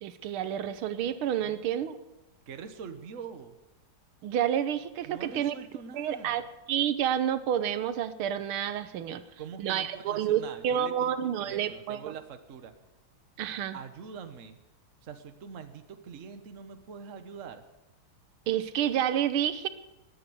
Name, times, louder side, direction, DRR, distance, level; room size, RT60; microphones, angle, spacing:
voice 1, 0.0-2.0 4.2-5.5 5.9-6.4 6.7-9.2 9.6-12.1 13.4-13.8 18.5-19.7, right 10 dB, 80° right, 12 dB, 1.7 m, -29 dB
voice 2, 2.5-3.6 5.0-6.5 9.4-12.7 13.7-14.6 15.0-17.6, right 6 dB, 45° right, 8 dB, 1.3 m, -44 dB
18.5 x 9.0 x 7.9 m, 0.96 s
omnidirectional pair, 2.3 m